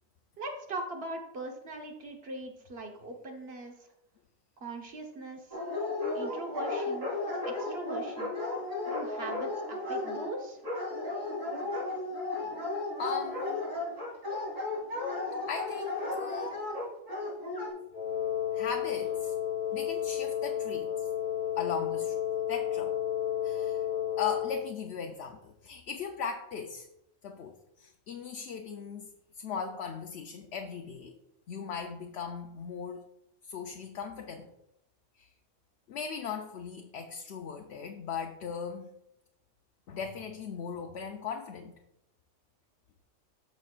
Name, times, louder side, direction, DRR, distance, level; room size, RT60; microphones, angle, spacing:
voice 1, 0.4-3.7 4.6-5.4 6.1-7.1 7.5-8.3 8.9-10.6, right 2 dB, 50° right, 2 dB, 1.3 m, -40 dB
Dog, 5.5-17.7, left 2 dB, 70° right, 3.9 m, -34 dB
voice 2, 13.0-13.6 15.5-16.7 18.5-19.4 19.7-21.1 21.6-22.2 22.5-22.9 23.4-23.9 24.2-26.9 27.2-29.1 29.4-31.1 31.5-33.0 33.4-34.5 35.2-35.3 35.9-38.9 39.9-41.7, left 6 dB, 60° left, 4 dB, 0.8 m, -38 dB
Wind instrument woodwind instrument, 17.9-24.7, left 10 dB, 45° left, 1.2 m, -32 dB
13.5 x 5.4 x 2.4 m, 0.84 s
omnidirectional pair, 1.4 m